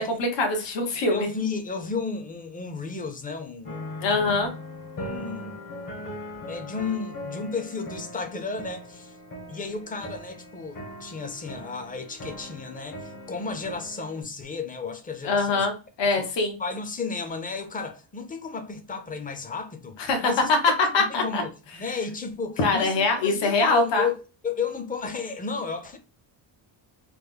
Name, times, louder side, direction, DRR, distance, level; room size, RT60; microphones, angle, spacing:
voice 1, 0.0-1.3 4.0-4.5 15.2-16.6 20.0-21.4 22.6-24.1, left 3 dB, 65° left, 1.0 m, -23 dB
voice 2, 1.1-4.4 5.0-5.6 6.5-9.1 9.5-15.7 16.2-16.3 16.6-20.5 20.8-26.0, left 5 dB, 20° left, 0.5 m, -33 dB
sound 1, 3.6-14.2, left 1 dB, 45° left, 1.0 m, -40 dB
3.2 x 2.0 x 3.5 m
cardioid pair, 125°, 46 cm